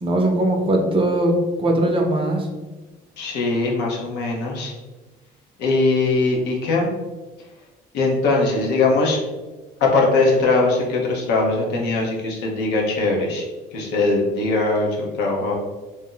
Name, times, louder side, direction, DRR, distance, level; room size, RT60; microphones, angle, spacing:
voice 1, 0.0-2.5, right 1 dB, 30° right, 2 dB, 0.6 m, -20 dB
voice 2, 3.2-4.7 5.6-6.9 7.9-9.2 9.8-13.4 13.7-15.5, left 3 dB, 90° left, -1 dB, 0.8 m, -20 dB
2.6 x 2.1 x 3.8 m, 1.2 s
cardioid pair, 110°, 17 cm